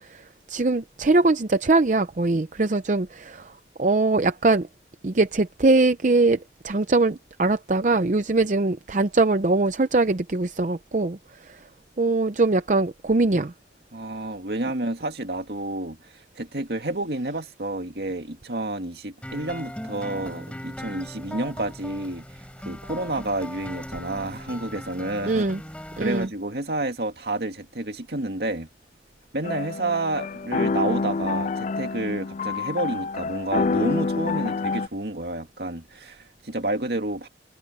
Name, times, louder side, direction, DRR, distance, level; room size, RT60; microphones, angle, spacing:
voice 1, 0.5-3.5 3.8-4.7 5.0-6.4 6.6-11.2 12.0-13.5 25.3-25.6 26.0-26.3, right 3 dB, 45° right, 0.6 m, -22 dB
voice 2, 13.9-16.0 16.4-22.2 22.7-25.4 26.0-28.7 29.3-37.3, right 2 dB, 65° right, 2.3 m, -30 dB
sound 1, 19.2-26.3, equal, 5° left, 6.0 m, -38 dB
sound 2, 29.4-34.9, left 4 dB, 40° left, 0.3 m, -27 dB
head